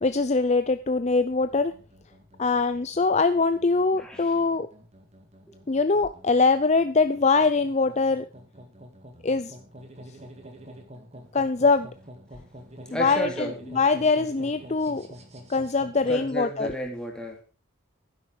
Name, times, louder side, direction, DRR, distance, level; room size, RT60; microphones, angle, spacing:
voice 1, 0.0-1.7 2.4-4.7 5.7-8.3 9.2-9.5 11.3-11.9 12.9-15.1 15.5-16.7, left 4 dB, 30° left, 11 dB, 0.5 m, -23 dB
sound 1, 1.0-16.3, equal, 30° right, 2.1 m, -47 dB
voice 2, 4.0-4.5 5.5-5.6 12.9-13.6 16.1-17.4, equal, 5° left, 1 dB, 3.0 m, -33 dB
12.0 x 10.5 x 4.8 m, 0.34 s
head